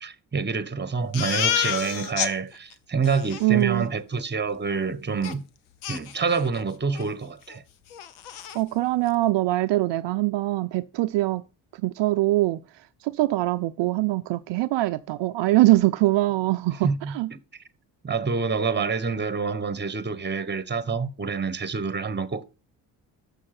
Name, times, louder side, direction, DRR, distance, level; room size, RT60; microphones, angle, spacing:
voice 1, 0.0-5.4 5.9-7.6 16.8-17.4 18.0-22.4, right 5 dB, 20° right, 1.1 m, -27 dB
Crying sobbing, 1.1-2.3 2.7-2.8 3.0-3.4 5.2-5.3 5.8-6.6 6.9-7.1 7.5-7.6 7.9-8.6, left 10 dB, 80° left, 0.9 m, -29 dB
voice 2, 3.4-3.9 8.5-11.4 11.8-12.6 13.0-17.3, right 18 dB, 60° right, 0.6 m, -23 dB
6.7 x 6.3 x 5.9 m
hypercardioid pair, 50°, 49 cm